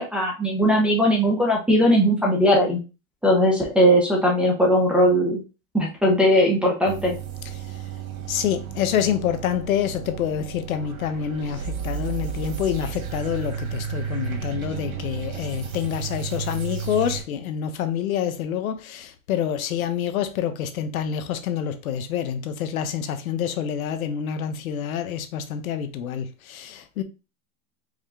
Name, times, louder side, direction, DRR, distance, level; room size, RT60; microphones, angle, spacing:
voice 1, 0.0-2.8 3.2-5.4 5.7-7.1, equal, 5° right, 0.6 m, -19 dB
sound 1, 6.9-17.2, right 7 dB, 85° right, 1.5 m, -33 dB
voice 2, 8.3-27.0, left 9 dB, 75° left, 0.9 m, -27 dB
4.9 x 2.2 x 3.6 m
supercardioid pair, 145°, 42 cm